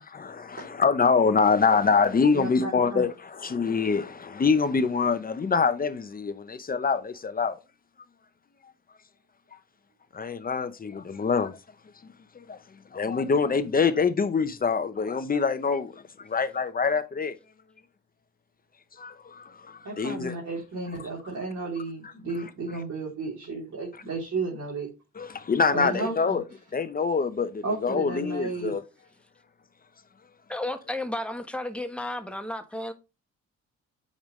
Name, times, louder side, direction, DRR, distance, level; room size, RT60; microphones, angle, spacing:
voice 1, 0.0-7.6 10.1-11.6 12.0-12.6 12.9-15.9 16.2-17.4 19.0-20.4 25.2-26.4 26.7-28.8, left 5 dB, 30° left, 0.8 m, -25 dB
voice 2, 2.3-3.0 19.8-24.9 25.7-26.4 27.6-28.8, right 3 dB, 55° right, 3.4 m, -33 dB
voice 3, 30.5-32.9, left 1 dB, 5° left, 1.2 m, -33 dB
8.7 x 5.2 x 3.2 m
cardioid pair, 90°, 30 cm